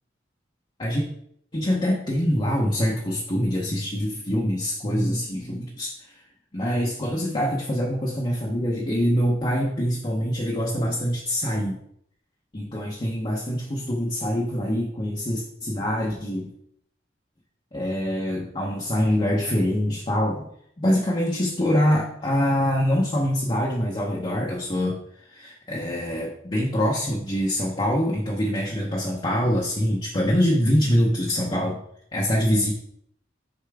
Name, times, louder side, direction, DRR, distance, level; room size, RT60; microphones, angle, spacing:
voice 1, 1.5-6.1 6.5-11.8 12.5-16.5 17.7-20.5 20.8-31.8 32.1-32.7, equal, 30° left, -3 dB, 0.8 m, -24 dB
6.7 x 4.3 x 3.5 m, 0.70 s
head